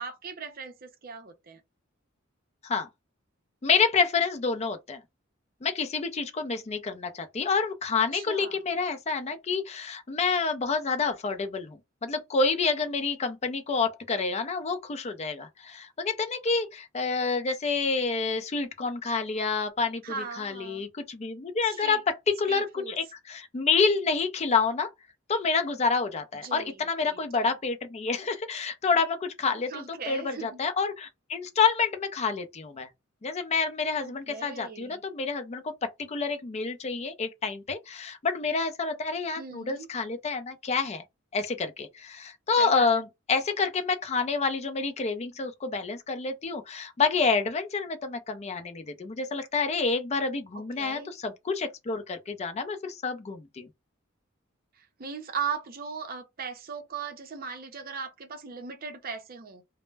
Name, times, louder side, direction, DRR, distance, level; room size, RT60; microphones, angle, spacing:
voice 1, 0.0-1.6 8.1-8.6 20.0-20.9 21.6-22.0 22.5-22.9 26.4-27.2 29.7-30.6 34.0-35.0 39.3-39.9 42.6-42.9 50.5-51.1 54.8-59.6, right 6 dB, 45° right, 0.5 m, -38 dB
voice 2, 3.6-5.0 5.6-20.0 20.4-22.0 22.4-24.9 25.3-32.9 33.2-41.0 41.3-53.7, left 4 dB, 30° left, 0.4 m, -28 dB
2.1 x 2.0 x 3.2 m
head